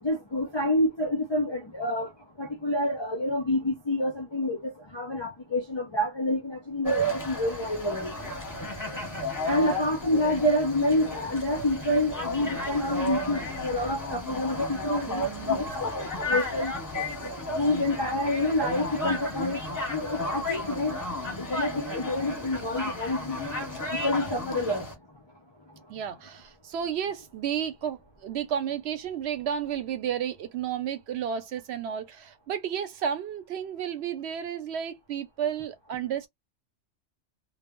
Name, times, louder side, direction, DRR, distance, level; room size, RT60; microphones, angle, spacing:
voice 1, 0.0-2.1 2.4-8.1 9.4-16.7 17.6-19.6 19.9-21.1 21.4-23.4 23.9-24.8, left 1 dB, 45° left, 0.3 m, -28 dB
sound 1, 6.8-24.9, left 1 dB, 20° left, 0.7 m, -33 dB
voice 2, 15.1-15.7 25.9-36.3, right 8 dB, 65° right, 0.8 m, -32 dB
2.0 x 2.0 x 3.5 m
omnidirectional pair, 1.3 m